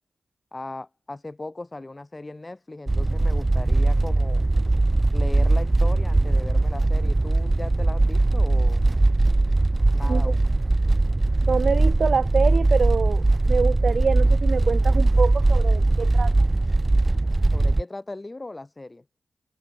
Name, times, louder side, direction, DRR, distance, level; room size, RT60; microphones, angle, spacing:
voice 1, 0.5-4.4 5.1-8.8 9.9-10.5 17.5-19.0, left 2 dB, 25° left, 5.7 m, -37 dB
sound 1, 2.9-17.8, right 2 dB, 25° right, 0.6 m, -20 dB
voice 2, 11.5-16.3, right 5 dB, 65° right, 1.1 m, -26 dB
cardioid pair, 65°, 0 cm